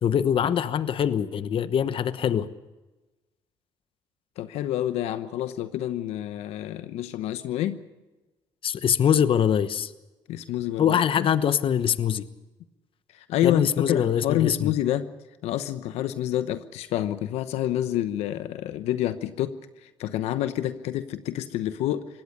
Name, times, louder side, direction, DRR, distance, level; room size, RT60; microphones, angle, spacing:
voice 1, 0.0-2.5 8.6-9.9 10.8-12.3 13.4-14.7, left 8 dB, 55° left, 13 dB, 1.1 m, -23 dB
voice 2, 4.4-7.8 10.3-11.3 13.1-15.1 15.4-22.1, left 12 dB, 80° left, 11 dB, 1.0 m, -28 dB
23.5 x 18.0 x 6.7 m, 1.1 s
supercardioid pair, 70°, 11 cm